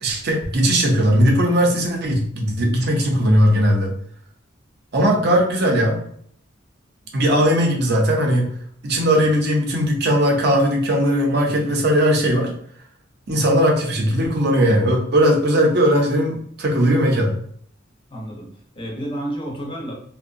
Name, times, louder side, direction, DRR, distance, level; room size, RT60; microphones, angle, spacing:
voice 1, 0.0-4.0 4.9-6.0 7.1-8.5 8.8-12.5 13.3-17.3, equal, 55° right, 0 dB, 0.6 m, -18 dB
voice 2, 5.1-5.7 7.0-7.8 18.1-19.9, right 1 dB, 25° left, -1 dB, 0.6 m, -33 dB
2.6 x 2.1 x 2.5 m, 0.62 s
head